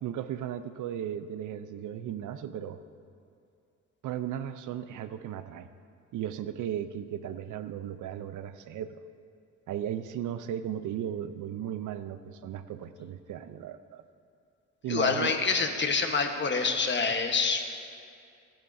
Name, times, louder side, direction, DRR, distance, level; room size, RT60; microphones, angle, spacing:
voice 1, 0.0-2.8 4.0-5.7 6.1-9.0 9.7-14.0 14.8-15.4, right 10 dB, 75° right, 11 dB, 0.6 m, -36 dB
voice 2, 14.9-17.7, left 4 dB, 35° left, 5 dB, 1.2 m, -27 dB
25.0 x 9.0 x 2.7 m, 2.4 s
cardioid pair, 90°, 31 cm